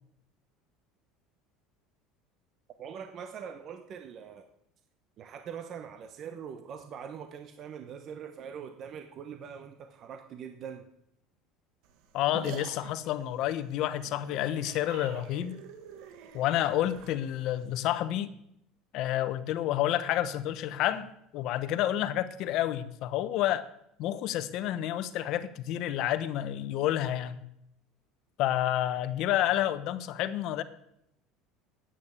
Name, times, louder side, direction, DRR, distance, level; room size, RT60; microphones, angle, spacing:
voice 1, 2.8-4.5 5.2-10.8, right 7 dB, 35° right, 0.9 m, -43 dB
sound 1, 11.8-17.9, right 8 dB, 65° right, 1.6 m, -47 dB
voice 2, 12.1-15.6 16.3-18.4 18.9-21.1 21.3-23.7 24.0-27.4 28.4-30.6, left 12 dB, 50° left, 1.0 m, -29 dB
10.5 x 8.5 x 8.5 m
cardioid pair, 150°, 0 cm